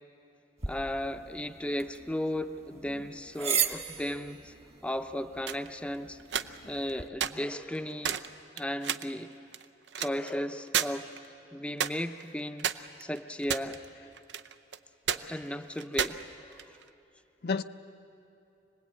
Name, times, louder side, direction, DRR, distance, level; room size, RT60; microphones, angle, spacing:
sound 1, 0.6-7.1, right 7 dB, 35° right, 1.3 m, -37 dB
voice 1, 0.7-4.5 4.8-6.2 6.6-8.2 8.6-9.3 10.0-11.1 11.5-13.8 15.2-16.8, left 1 dB, 5° left, 0.6 m, -35 dB
sound 2, 5.5-5.7 6.2-6.9 7.2-7.3 7.7-7.8 8.0-8.3 8.6-9.1 9.5-10.3 10.7-10.9 11.2-11.3 11.8-12.2 12.6-13.9 14.1-14.8 15.1-15.2 15.8-16.9, right 9 dB, 90° right, 0.7 m, -31 dB
voice 2, 6.3-6.8 17.4-17.6, left 4 dB, 60° left, 0.6 m, -34 dB
26.0 x 20.0 x 8.8 m
head